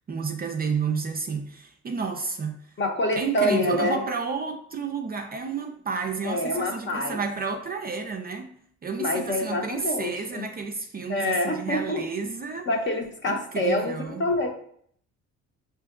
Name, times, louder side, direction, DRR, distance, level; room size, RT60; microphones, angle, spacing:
voice 1, 0.1-2.7 3.1-8.5 8.8-12.7 13.3-14.3, right 5 dB, 30° right, 0.4 m, -31 dB
voice 2, 2.8-4.0 6.2-7.2 9.0-10.4 11.1-12.0 12.7-14.5, left 1 dB, 40° left, 0.8 m, -26 dB
4.9 x 2.8 x 2.4 m
cardioid pair, 90°, 30 cm